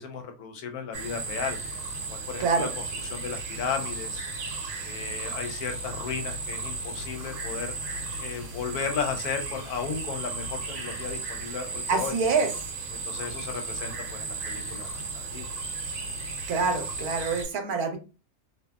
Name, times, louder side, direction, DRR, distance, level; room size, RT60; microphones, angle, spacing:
voice 1, 0.0-1.6 2.1-4.2 4.8-7.7 8.2-12.1 12.9-15.5, left 6 dB, 90° left, 6 dB, 1.1 m, -35 dB
sound 1, 0.9-17.4, right 3 dB, 65° right, 1.0 m, -35 dB
voice 2, 2.4-2.7 11.9-12.5 16.5-18.0, right 4 dB, 85° right, 5 dB, 1.1 m, -26 dB
2.8 x 2.4 x 2.2 m, 0.32 s
omnidirectional pair, 1.6 m